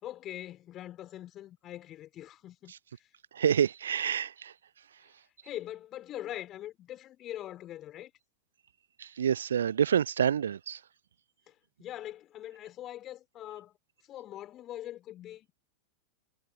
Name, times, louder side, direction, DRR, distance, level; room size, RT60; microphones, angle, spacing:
voice 1, 0.0-2.7 3.0-3.1 5.4-8.1 11.5-13.8 14.1-15.5, left 13 dB, 30° left, 4.3 m, -42 dB
voice 2, 3.3-4.5 9.0-10.8, right 8 dB, 65° right, 0.3 m, -27 dB
figure-of-eight pair, 90°, 0 cm